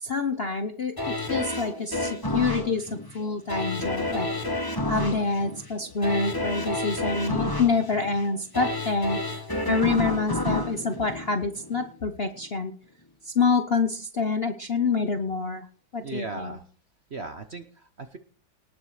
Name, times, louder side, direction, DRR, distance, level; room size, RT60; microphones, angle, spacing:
voice 1, 0.0-4.3 4.9-9.3 9.7-12.7 13.3-15.7 15.9-16.5, left 4 dB, 50° left, 8 dB, 0.8 m, -27 dB
sound 1, 1.0-11.9 12.4-12.5, left 2 dB, 15° left, 1.3 m, -30 dB
voice 2, 16.0-16.6 17.1-18.2, right 3 dB, 45° right, 8 dB, 0.9 m, -37 dB
19.0 x 7.2 x 4.9 m, 0.40 s
omnidirectional pair, 2.1 m